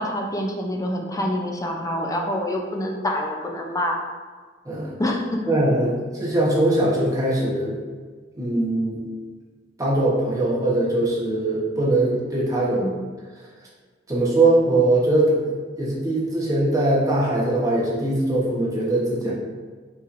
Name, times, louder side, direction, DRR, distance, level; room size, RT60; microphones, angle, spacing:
voice 1, 0.0-4.0 5.0-5.4 12.8-13.0 19.2-19.3, left 1 dB, 20° left, 1 dB, 0.5 m, -26 dB
voice 2, 5.5-5.9 6.2-7.8 8.3-9.0 9.8-12.8 14.1-19.3, right 2 dB, 20° right, -6 dB, 1.0 m, -21 dB
5.5 x 3.1 x 2.5 m, 1.5 s
head